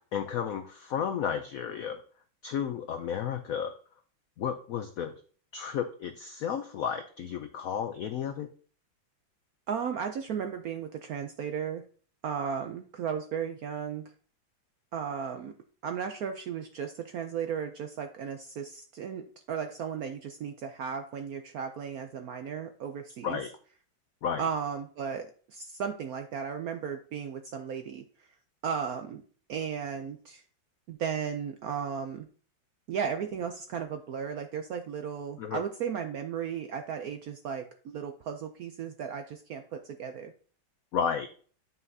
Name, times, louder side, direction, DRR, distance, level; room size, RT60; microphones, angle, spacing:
voice 1, 0.1-2.0 2.4-3.7 4.4-5.2 5.5-8.5 23.2-23.5 24.2-24.4 35.4-35.6 40.9-41.3, left 8 dB, 80° left, 8 dB, 0.7 m, -32 dB
voice 2, 9.7-11.8 12.2-14.0 14.9-15.5 15.8-19.2 19.5-23.4 24.4-28.0 28.6-29.2 29.5-30.4 30.9-32.3 32.9-40.3, right 7 dB, 70° right, 6 dB, 0.8 m, -35 dB
9.4 x 5.6 x 2.7 m, 0.43 s
omnidirectional pair, 2.1 m